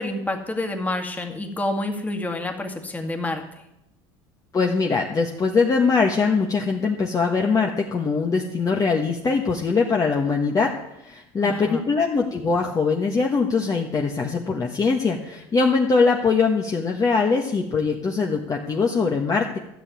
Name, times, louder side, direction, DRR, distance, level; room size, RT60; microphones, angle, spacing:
voice 1, 0.0-3.4 11.4-11.9, left 2 dB, 10° left, 3 dB, 2.1 m, -28 dB
voice 2, 4.5-10.7 11.0-19.6, left 4 dB, 25° left, 1 dB, 1.4 m, -22 dB
13.5 x 6.6 x 9.3 m, 0.84 s
supercardioid pair, 105°, 13 cm